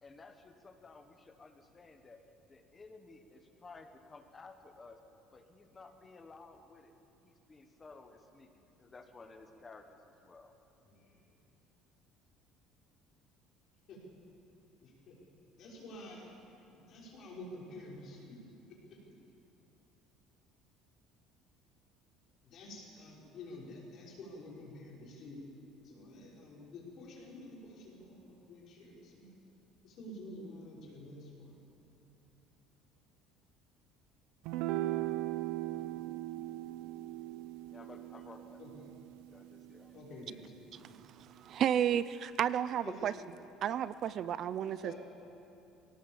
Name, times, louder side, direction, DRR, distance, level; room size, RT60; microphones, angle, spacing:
voice 1, 0.0-2.2 2.5-5.0 5.3-6.9 7.2-10.5 37.7-38.9 39.3-40.0, left 3 dB, 15° left, 6 dB, 1.2 m, -55 dB
voice 2, 10.8-11.2 13.9-14.0 14.8-15.2 15.6-16.3 16.7-18.4 18.9-19.0 22.4-25.4 25.8-29.4 29.8-31.6 38.6-38.9 39.9-41.1 42.8-43.1 44.7-45.0, left 1 dB, 45° left, -4 dB, 5.7 m, -49 dB
sound 1, 34.5-41.0, right 15 dB, 75° right, 0.7 m, -39 dB
voice 3, 41.4-43.1 43.6-44.9, right 9 dB, 40° right, 15 dB, 0.4 m, -32 dB
21.5 x 17.5 x 7.4 m, 2.7 s
cardioid pair, 160°, 0 cm